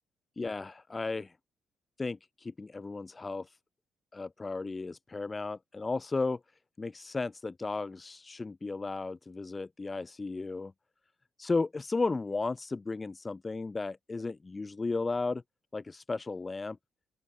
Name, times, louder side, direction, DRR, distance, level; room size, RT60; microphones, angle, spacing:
voice 1, 0.4-1.3 2.0-3.6 4.1-6.4 6.8-10.7 11.4-15.4 15.7-16.8, left 3 dB, 25° left, 3.7 m, -34 dB
open air
cardioid pair, 90°, 0 cm